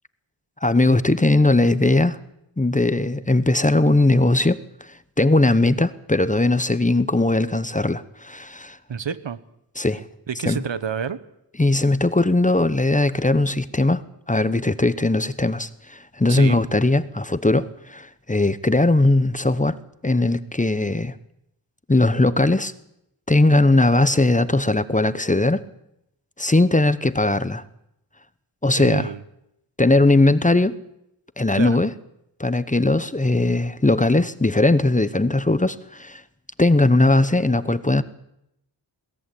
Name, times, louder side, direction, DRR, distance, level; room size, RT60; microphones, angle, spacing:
voice 1, 0.6-2.2 2.6-8.8 9.8-10.0 10.4-10.6 11.6-14.0 14.3-19.8 20.0-21.1 21.9-22.7 23.3-25.6 26.4-27.6 28.6-29.1 29.8-30.8 31.4-31.9 32.4-36.2 36.6-38.0, left 2 dB, 15° left, 0.9 m, -19 dB
voice 2, 8.9-9.4 10.3-11.2 16.3-16.6 28.8-29.2 31.5-31.8, right 7 dB, 75° right, 1.3 m, -28 dB
22.0 x 17.5 x 8.4 m
wide cardioid pair, 65°, 45 cm